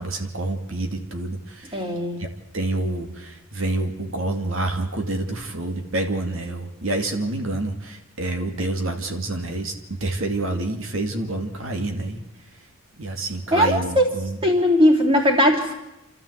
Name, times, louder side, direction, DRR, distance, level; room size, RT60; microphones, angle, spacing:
voice 1, 0.0-1.9 2.2-2.3 2.5-9.7 10.0-12.2 13.0-14.4, right 2 dB, 70° right, 5 dB, 2.4 m, -28 dB
voice 2, 1.7-2.2 13.5-14.1 14.4-15.7, equal, 25° right, 0 dB, 3.4 m, -18 dB
28.5 x 13.0 x 8.1 m, 0.98 s
head